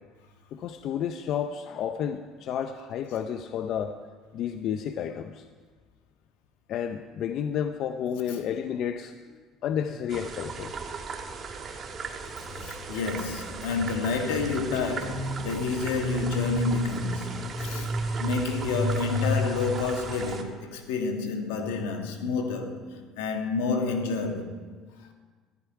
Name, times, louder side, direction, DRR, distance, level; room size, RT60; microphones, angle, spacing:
voice 1, 0.5-4.0 4.3-5.4 6.7-10.8 12.6-12.7, left 8 dB, 60° left, 0.6 m, -31 dB
sound 1, 10.1-20.4, right 5 dB, 40° right, 1.4 m, -38 dB
voice 2, 12.5-22.9 23.2-24.5, left 4 dB, 90° left, 1.4 m, -29 dB
sound 2, 12.5-20.2, left 1 dB, 30° left, 1.7 m, -32 dB
14.5 x 11.5 x 4.7 m
supercardioid pair, 90°, 0 cm